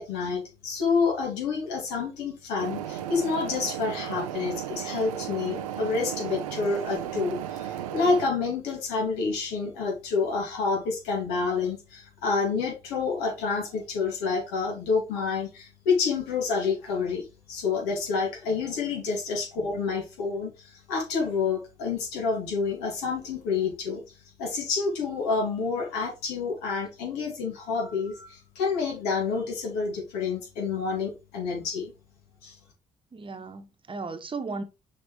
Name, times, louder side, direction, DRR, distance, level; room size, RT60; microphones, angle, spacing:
voice 1, 0.0-24.0 24.4-31.9 32.4-32.6, left 4 dB, 75° left, 2.5 m, -28 dB
sound 1, 2.6-8.3, right 11 dB, 85° right, 0.6 m, -34 dB
voice 2, 33.1-34.6, right 4 dB, 30° right, 1.1 m, -36 dB
6.1 x 5.0 x 3.2 m
hypercardioid pair, 50°, 17 cm